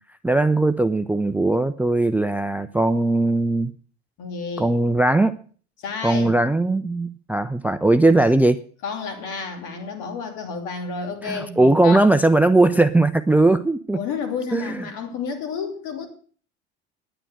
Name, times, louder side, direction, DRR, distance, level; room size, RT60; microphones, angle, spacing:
voice 1, 0.2-3.7 4.6-5.3 6.0-8.6 11.2-14.0 14.5-14.9, right 2 dB, 5° right, 13 dB, 0.5 m, -19 dB
voice 2, 4.2-4.7 5.8-6.4 8.8-12.1 13.9-16.1, left 5 dB, 60° left, 5 dB, 3.0 m, -30 dB
10.0 x 9.1 x 6.3 m, 0.43 s
hypercardioid pair, 75°, 34 cm